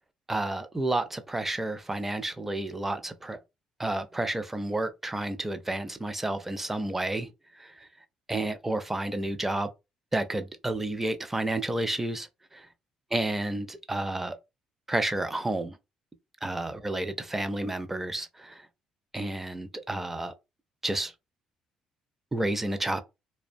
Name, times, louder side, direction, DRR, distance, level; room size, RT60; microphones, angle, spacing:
voice 1, 0.3-3.4 3.8-7.3 7.6-7.9 8.3-9.7 10.1-12.7 13.1-14.4 14.9-15.8 16.4-18.7 19.1-20.3 20.8-21.1 22.3-23.0, right 1 dB, 15° right, 0.5 m, -31 dB
2.4 x 2.1 x 2.6 m
supercardioid pair, 80°, 2 cm